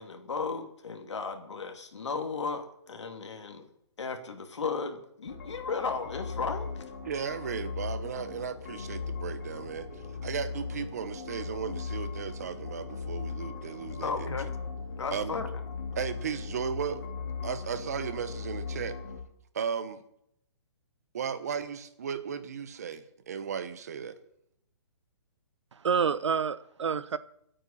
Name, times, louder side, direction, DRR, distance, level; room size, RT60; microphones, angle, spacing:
voice 1, 0.0-3.7 4.0-6.8 14.0-14.5 15.0-15.5, left 4 dB, 85° left, 2.8 m, -35 dB
sound 1, 5.3-19.2, left 5 dB, 40° left, 2.7 m, -38 dB
voice 2, 7.0-9.9 10.2-14.4 15.1-15.4 15.9-17.0 17.4-19.0 19.5-20.0 21.1-24.1, right 7 dB, 35° right, 1.1 m, -35 dB
voice 3, 25.7-27.2, right 6 dB, 85° right, 0.9 m, -28 dB
25.5 x 9.0 x 4.3 m
hypercardioid pair, 175°, 15 cm